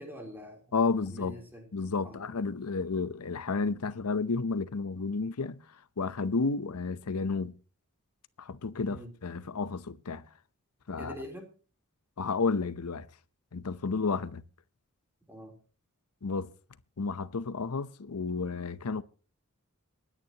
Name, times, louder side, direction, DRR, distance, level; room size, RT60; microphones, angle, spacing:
voice 1, 0.0-0.6 1.1-1.7 2.0-2.4 8.8-9.1 11.0-11.5 15.3-15.6, equal, 10° right, 3.4 m, -44 dB
voice 2, 0.7-1.4 1.7-5.6 6.0-7.5 8.4-10.3 10.9-11.1 12.2-13.1 13.5-14.4 16.2-16.5 17.0-19.0, left 4 dB, 90° left, 0.7 m, -31 dB
27.0 x 10.0 x 2.9 m
head